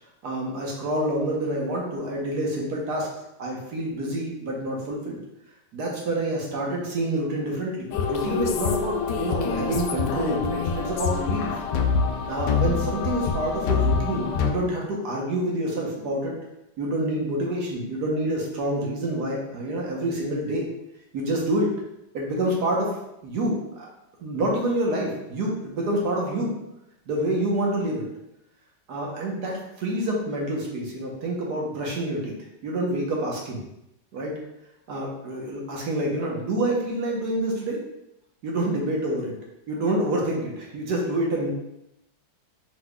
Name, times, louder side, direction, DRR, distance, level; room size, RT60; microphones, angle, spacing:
voice 1, 0.2-3.1 3.4-5.2 5.7-11.6 12.3-16.4 16.8-20.7 21.1-21.7 22.1-22.9 23.2-23.9 24.2-26.5 27.1-28.0 28.9-32.3 32.6-33.6 34.1-34.4 34.9-37.8 38.4-39.3 39.7-41.5, right 1 dB, 65° right, -2 dB, 1.4 m, -27 dB
sound 1, 7.9-14.5, left 5 dB, 75° left, 1.1 m, -25 dB
4.8 x 4.1 x 2.3 m, 0.85 s
omnidirectional pair, 2.0 m